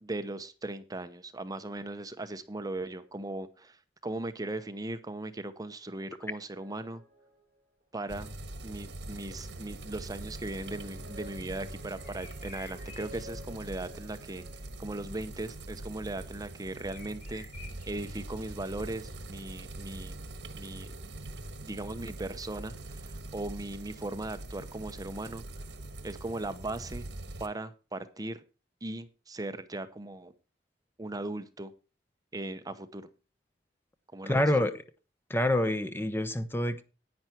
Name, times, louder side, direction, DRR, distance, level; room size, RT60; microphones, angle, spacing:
voice 1, 0.0-7.0 7.9-8.3 8.6-14.4 14.8-17.5 17.9-20.2 20.5-20.9 21.6-25.4 26.0-27.1 27.4-28.4 28.8-30.3 31.0-31.7 32.3-33.1 34.1-34.4, right 2 dB, 20° right, 0.8 m, -38 dB
sound 1, 6.5-7.8 10.1-15.4, left 1 dB, 55° right, 3.7 m, -53 dB
sound 2, 8.1-27.5, right 2 dB, 80° right, 1.4 m, -43 dB
sound 3, 12.0-13.2 13.6-13.7 14.2-14.7 16.7-18.7, left 4 dB, 50° left, 3.7 m, -52 dB
voice 2, 34.3-34.7 35.3-36.8, left 1 dB, 15° left, 0.8 m, -27 dB
10.5 x 9.6 x 4.4 m
head